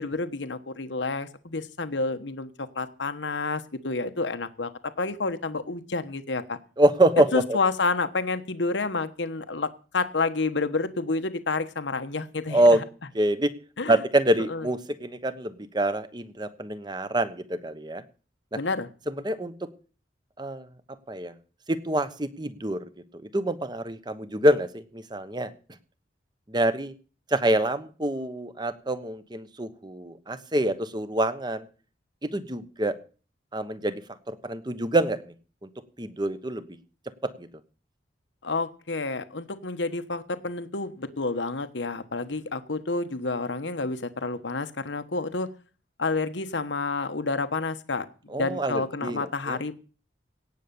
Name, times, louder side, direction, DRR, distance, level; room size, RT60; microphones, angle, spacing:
voice 1, 0.0-4.7 5.0-6.6 7.3-12.8 13.8-14.0 14.5-14.7 18.5-18.9 38.4-45.5 46.0-48.1 48.3-49.8, left 3 dB, 90° left, 10 dB, 1.2 m, -29 dB
voice 2, 6.8-7.6 12.5-12.8 13.1-13.5 13.9-18.0 19.1-19.5 20.4-20.7 21.1-21.3 21.7-22.8 23.3-25.5 26.5-26.9 27.3-31.7 32.2-33.0 33.5-34.0 34.3-35.2 36.0-36.6 37.4-37.5 48.3-49.6, right 1 dB, 25° right, 12 dB, 1.1 m, -25 dB
17.5 x 7.0 x 7.0 m, 0.38 s
head